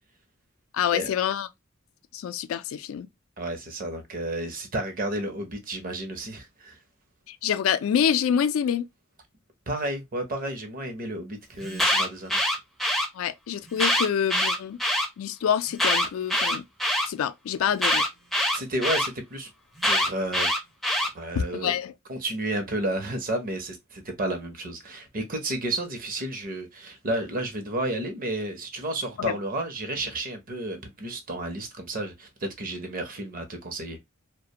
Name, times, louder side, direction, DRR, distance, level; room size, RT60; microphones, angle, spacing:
voice 1, 0.7-1.5 2.1-3.1 7.3-8.9 13.1-14.8 15.2-16.6 17.1-18.0 21.3-21.9 29.2-29.4, left 8 dB, 75° left, 0.3 m, -26 dB
voice 2, 3.4-6.8 9.7-12.4 18.5-19.5 19.8-20.5 21.1-21.8 22.1-34.0, right 1 dB, 45° right, 0.7 m, -32 dB
Alarm, 11.6-13.1 13.7-15.1 15.7-17.1 17.8-19.1 19.8-21.1, left 1 dB, ahead, 0.5 m, -24 dB
2.4 x 2.1 x 2.7 m
head